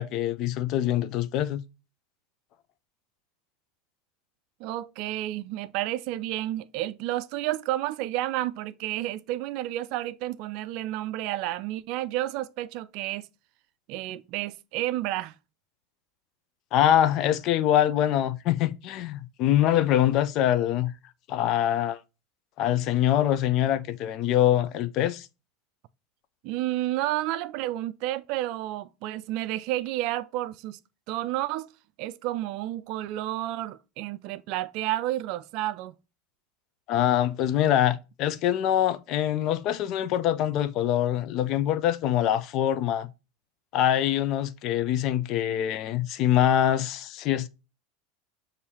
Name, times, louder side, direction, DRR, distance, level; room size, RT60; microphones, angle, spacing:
voice 1, 0.0-1.6 16.7-20.9 21.3-22.0 22.6-25.3 36.9-43.1 43.7-47.5, left 11 dB, 50° left, 0.5 m, -24 dB
voice 2, 4.6-13.3 13.9-15.4 26.4-30.8 31.1-31.7 32.0-36.0, right 15 dB, 55° right, 0.3 m, -31 dB
6.9 x 2.7 x 2.8 m
hypercardioid pair, 85°, 0 cm